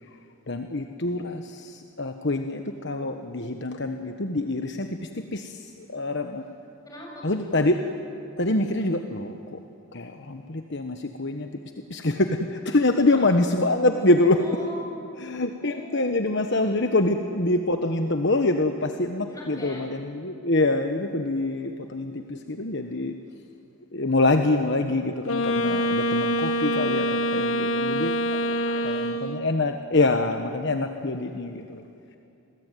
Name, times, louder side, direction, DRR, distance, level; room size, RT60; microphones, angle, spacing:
voice 1, 0.5-4.9 5.3-6.5 7.2-7.8 8.4-9.6 9.9-11.5 11.9-14.4 15.2-23.1 23.9-28.1 28.8-31.8, left 2 dB, 55° left, 6 dB, 1.3 m, -25 dB
voice 2, 6.8-7.3 13.1-13.2 14.2-15.2 15.6-16.4 16.6-16.8 19.3-19.9 20.5-20.7 28.3-29.1, equal, 15° left, -2 dB, 7.3 m, -42 dB
Wind instrument woodwind instrument, 25.2-29.6, equal, 70° left, 1.5 m, -25 dB
29.5 x 21.5 x 9.3 m, 2.7 s
head